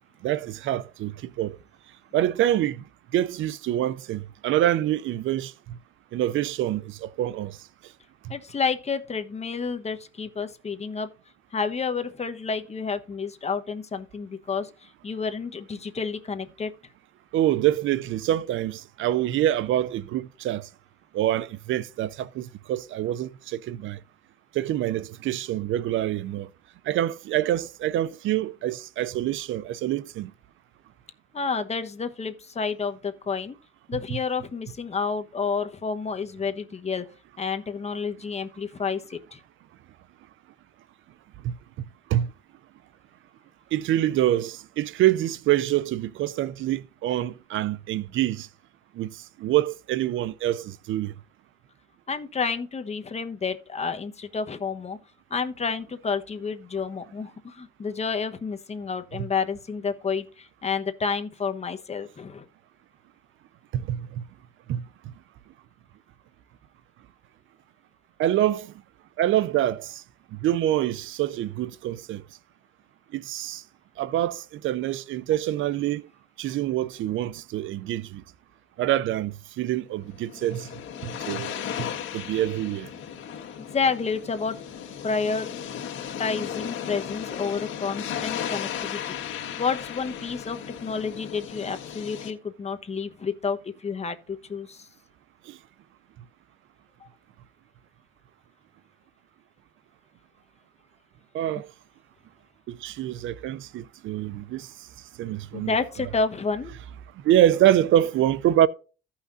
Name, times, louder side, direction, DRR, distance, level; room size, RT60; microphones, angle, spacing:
voice 1, 0.2-1.6 2.1-2.8 3.1-5.8 6.1-7.6 17.3-20.7 21.1-24.0 24.5-26.5 26.9-30.3 34.1-34.2 41.4-41.5 42.1-42.3 43.7-48.5 49.0-51.1 63.7-64.2 64.7-64.8 68.2-68.7 69.2-70.0 70.3-72.2 73.1-73.6 74.0-76.0 76.4-78.2 78.8-80.7 81.0-81.6 82.1-82.9 95.5-95.6 101.3-101.7 102.7-104.7 105.2-105.8 107.2-108.7, right 12 dB, 80° right, 0.5 m, -26 dB
voice 2, 8.3-11.1 11.5-16.7 31.3-33.6 33.9-37.0 37.4-39.4 52.1-55.0 55.3-62.4 83.6-84.6 85.0-85.5 86.2-89.2 89.6-94.9 105.5-106.7, left 5 dB, 35° left, 1.1 m, -30 dB
sound 1, 80.1-92.3, left 9 dB, 75° left, 1.5 m, -35 dB
15.5 x 5.7 x 2.6 m
cardioid pair, 90°, 20 cm